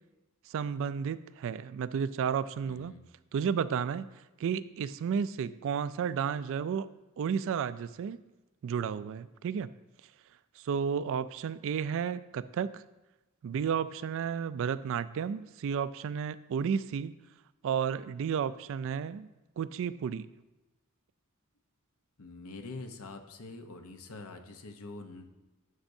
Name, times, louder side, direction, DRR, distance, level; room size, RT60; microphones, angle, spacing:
voice 1, 0.5-2.9 3.3-4.1 4.4-6.9 7.2-8.2 8.6-9.7 10.6-12.8 13.4-17.1 17.6-19.3 19.6-20.3, right 7 dB, 65° right, 15 dB, 0.3 m, -32 dB
voice 2, 2.7-3.1 22.2-25.3, left 3 dB, 85° left, 6 dB, 0.8 m, -45 dB
11.5 x 6.2 x 2.7 m, 1.1 s
head